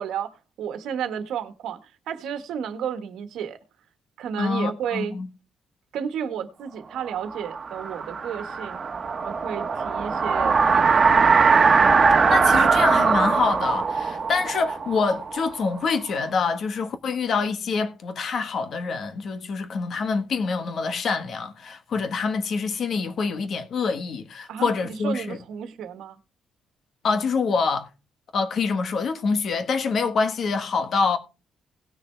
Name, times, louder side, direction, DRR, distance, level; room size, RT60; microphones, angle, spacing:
voice 1, 0.0-3.6 4.2-5.1 5.9-8.8 9.2-11.5 24.5-26.2, right 8 dB, 85° right, 1.4 m, -32 dB
voice 2, 4.4-5.3 12.3-25.4 27.0-27.9 28.3-31.2, left 4 dB, 50° left, 1.4 m, -26 dB
sound 1, 7.2-15.9, right 5 dB, 30° right, 1.4 m, -21 dB
18.5 x 6.4 x 3.4 m
cardioid pair, 155°, 0 cm